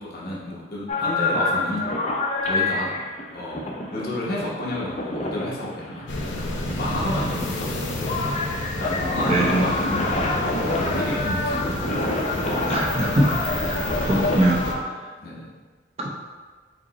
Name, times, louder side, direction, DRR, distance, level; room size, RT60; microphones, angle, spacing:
voice 1, 0.0-1.8 2.4-2.9 3.3-8.2 8.8-11.9 15.2-15.5, left 1 dB, 50° left, -5 dB, 0.8 m, -31 dB
sound 1, 0.9-14.8, left 2 dB, 35° left, 0.5 m, -27 dB
sound 2, 6.1-14.7, left 1 dB, 85° left, 0.6 m, -30 dB
voice 2, 9.3-9.6 12.7-13.8 14.0-14.6 16.0-16.1, right 1 dB, 35° right, -2 dB, 0.5 m, -22 dB
4.9 x 2.1 x 4.0 m, 1.4 s
head